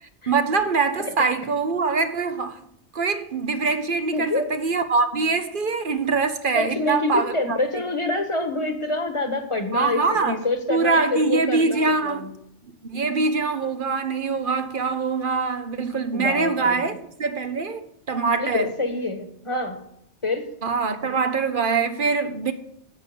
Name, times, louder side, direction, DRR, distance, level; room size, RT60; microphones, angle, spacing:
voice 1, 0.0-2.6 2.9-7.8 9.7-10.4 10.7-12.3 12.8-18.7 20.6-22.5, right 4 dB, 50° right, 1.0 m, -24 dB
voice 2, 4.1-4.5 6.5-12.3 16.1-17.0 18.4-19.8 20.2-20.5, left 2 dB, 25° left, 1.5 m, -26 dB
10.5 x 8.6 x 6.7 m
omnidirectional pair, 1.2 m